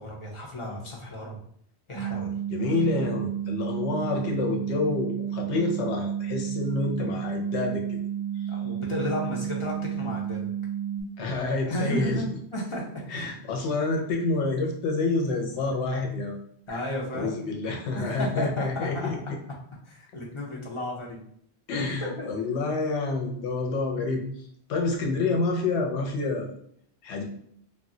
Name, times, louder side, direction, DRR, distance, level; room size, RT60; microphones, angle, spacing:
voice 1, 0.0-1.4 1.9-2.3 8.5-10.5 11.6-12.8 13.1-13.4 16.7-17.5 17.9-19.1 19.8-21.2 21.7-22.3, equal, 40° left, -3 dB, 0.5 m, -33 dB
sound 1, 1.9-11.0, right 10 dB, 60° right, 0.7 m, -31 dB
voice 2, 2.5-8.0 8.4-8.6 11.2-12.2 13.1-16.4 16.7-16.8 17.1-19.4 21.7-24.4 24.7-26.5 27.0-27.2, left 3 dB, 80° left, 1 dB, 0.9 m, -28 dB
2.2 x 2.1 x 3.6 m, 0.68 s
omnidirectional pair, 1.1 m